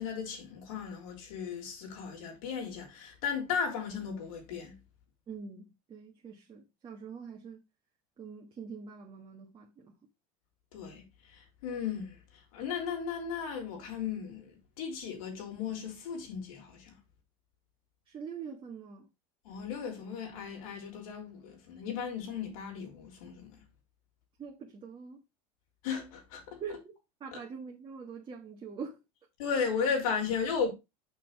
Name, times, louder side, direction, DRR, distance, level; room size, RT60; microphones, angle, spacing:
voice 1, 0.0-4.7 10.7-11.0 11.3-12.2 12.5-17.0 19.5-23.6 25.8-26.6 29.4-30.7, left 6 dB, 85° left, 3.5 m, -35 dB
voice 2, 5.3-7.6 8.2-9.9 18.1-19.1 24.4-25.2 26.6-26.8 27.2-29.0, right 6 dB, 30° right, 1.5 m, -44 dB
6.1 x 6.0 x 4.6 m
supercardioid pair, 130°, 18 cm